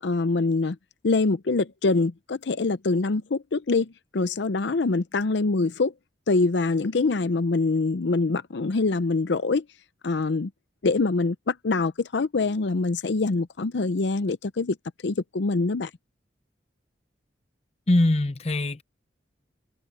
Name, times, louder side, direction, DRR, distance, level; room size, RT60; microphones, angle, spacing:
voice 1, 0.0-0.8 1.0-5.9 6.3-9.6 10.0-10.5 10.8-14.8 15.0-15.9, left 3 dB, 70° left, 0.6 m, -24 dB
voice 2, 17.9-18.8, left 1 dB, 35° left, 0.7 m, -22 dB
head